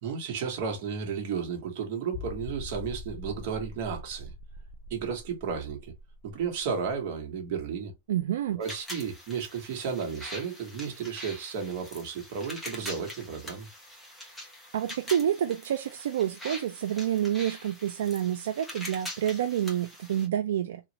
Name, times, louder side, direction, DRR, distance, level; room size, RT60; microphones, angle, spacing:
voice 1, 0.0-4.3 4.9-5.9 6.2-7.9 8.5-13.7, right 6 dB, 45° right, 1.2 m, -33 dB
sound 1, 2.1-7.6 7.9-8.0 8.5-8.6, left 3 dB, 30° left, 0.3 m, -43 dB
voice 2, 8.1-8.6 14.7-20.8, right 10 dB, 80° right, 0.4 m, -28 dB
sound 2, 8.6-20.3, left 1 dB, 5° left, 0.8 m, -43 dB
3.0 x 2.4 x 2.7 m
supercardioid pair, 170°, 0 cm